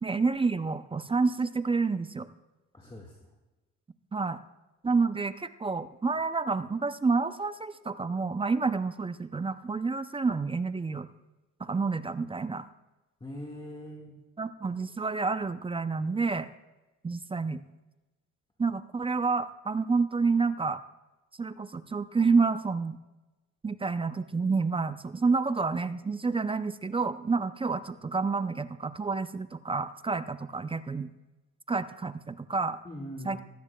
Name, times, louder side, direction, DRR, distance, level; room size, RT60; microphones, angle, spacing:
voice 1, 0.0-2.3 4.1-4.4 4.8-11.1 11.6-12.7 14.4-16.5 17.0-17.6 18.6-20.8 21.4-23.0 23.6-31.1 31.7-32.8 33.3-33.4, right 4 dB, 20° right, 12 dB, 0.5 m, -29 dB
voice 2, 2.7-3.3 13.2-14.2 32.8-33.4, equal, 15° left, 0 dB, 1.7 m, -42 dB
17.0 x 14.5 x 2.2 m, 1.1 s
cardioid pair, 90°, 30 cm